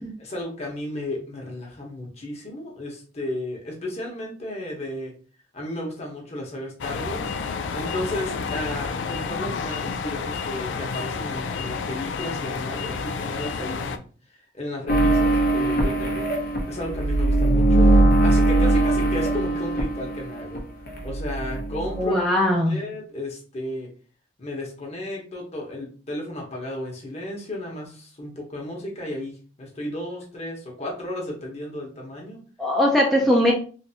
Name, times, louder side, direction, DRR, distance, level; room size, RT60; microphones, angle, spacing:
voice 1, 0.2-5.1 5.5-7.3 7.7-16.4 16.7-20.6 21.0-22.2 22.7-23.9 24.4-32.4, left 1 dB, 35° left, 0 dB, 1.1 m, -34 dB
sound 1, 6.8-14.0, left 5 dB, 85° left, 0.4 m, -30 dB
sound 2, 14.9-20.6 20.9-22.0, right 2 dB, 55° left, 0.7 m, -21 dB
voice 2, 22.0-22.8 32.6-33.5, left 1 dB, ahead, -3 dB, 0.5 m, -20 dB
3.3 x 2.6 x 2.8 m, 0.39 s
head